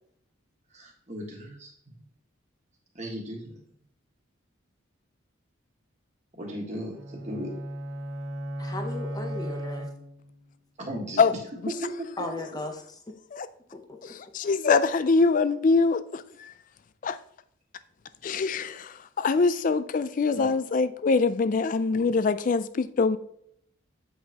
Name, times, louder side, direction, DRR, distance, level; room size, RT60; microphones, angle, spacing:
voice 1, 0.7-1.7 2.9-3.5 6.4-7.5 10.8-11.2 11.8-12.1 12.5-12.6 20.3-20.5 21.9-22.0, equal, 35° right, 1.4 m, -36 dB
sound 1, 6.9-10.5, equal, 75° right, 1.0 m, -35 dB
voice 2, 8.6-9.9 12.2-13.1 13.7-13.8 14.1-14.2, left 2 dB, 20° left, 0.7 m, -36 dB
voice 3, 14.0-16.5 17.0-17.2 18.2-23.2, left 4 dB, 40° left, 0.3 m, -24 dB
7.8 x 5.3 x 2.9 m
head